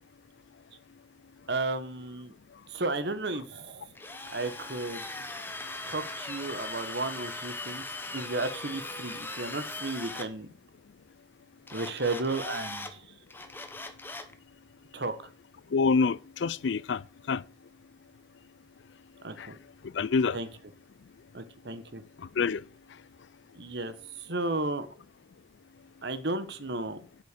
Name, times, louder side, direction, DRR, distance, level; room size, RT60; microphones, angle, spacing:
voice 1, 1.5-2.3 2.7-3.9 4.3-5.0 5.9-7.8 8.1-10.5 11.7-12.9 14.9-15.1 19.2-19.6 20.3-20.5 21.3-22.0 23.5-23.9 24.2-24.9 26.0-27.0, right 2 dB, 65° right, 1.3 m, -33 dB
Drill, 3.9-10.3 11.7-12.9 13.3-14.3, left 2 dB, 10° left, 1.0 m, -39 dB
voice 2, 15.7-17.0 17.3-17.4 20.0-20.4 22.4-22.6, left 5 dB, 75° left, 0.4 m, -26 dB
8.1 x 6.6 x 6.7 m
head